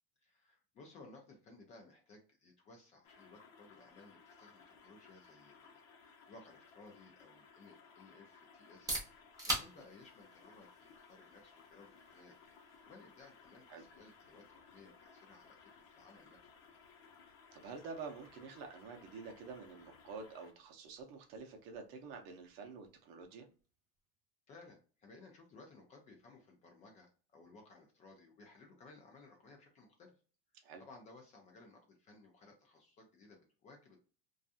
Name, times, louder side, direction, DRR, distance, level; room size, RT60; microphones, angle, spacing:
voice 1, 0.2-8.9 9.4-12.6 12.8-16.8 24.5-30.1 30.8-34.0, left 3 dB, 25° left, 0.4 m, -59 dB
sound 1, 3.0-20.5, left 5 dB, 60° left, 0.7 m, -61 dB
sound 2, 8.6-24.2, right 1 dB, 10° right, 0.7 m, -49 dB
voice 2, 17.5-23.5 30.6-30.8, right 4 dB, 45° right, 0.6 m, -48 dB
2.5 x 2.3 x 2.6 m
supercardioid pair, 160°, 30 cm